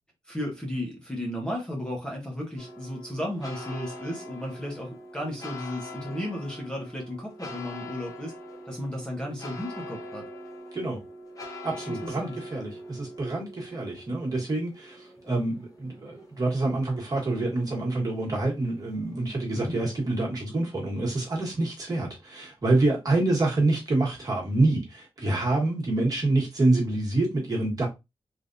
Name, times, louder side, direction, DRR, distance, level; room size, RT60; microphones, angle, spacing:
voice 1, 0.3-8.3 8.7-10.2 12.0-12.3 19.5-19.7, equal, 10° left, 0.9 m, -34 dB
sound 1, 2.6-20.1, left 1 dB, 35° left, 1.1 m, -43 dB
voice 2, 11.6-27.9, right 2 dB, 40° right, 1.5 m, -27 dB
3.4 x 2.7 x 2.5 m
wide cardioid pair, 125°, 10 cm